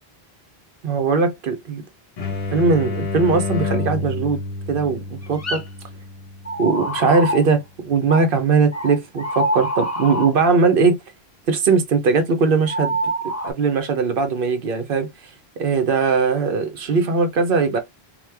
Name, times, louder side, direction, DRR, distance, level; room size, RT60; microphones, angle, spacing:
voice 1, 0.8-1.8 2.5-4.4 4.7-5.6 6.6-11.0 11.5-13.0 13.4-15.1 15.6-17.8, right 4 dB, 60° right, 0.8 m, -19 dB
sound 1, 2.2-7.7, left 3 dB, 50° left, 0.8 m, -29 dB
sound 2, 5.2-5.6 6.4-7.4 8.1-8.3 8.7-10.4 12.6-13.5, right 1 dB, 20° left, 0.4 m, -25 dB
3.0 x 2.1 x 3.2 m
omnidirectional pair, 1.1 m